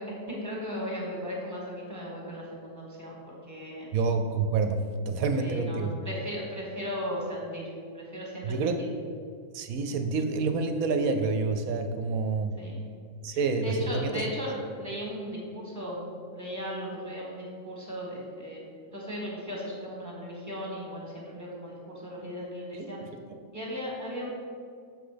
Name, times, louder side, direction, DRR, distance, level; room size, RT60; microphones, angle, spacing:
voice 1, 0.0-4.0 5.4-7.7 7.9-8.9 12.6-12.9 13.3-23.0 23.5-24.3, equal, 10° right, -3 dB, 1.8 m, -37 dB
voice 2, 3.9-4.8 5.1-5.9 8.4-8.8 9.5-12.5 13.2-14.2 22.7-22.9, right 4 dB, 70° right, 7 dB, 1.0 m, -28 dB
7.0 x 5.9 x 5.1 m, 2.3 s
omnidirectional pair, 1.6 m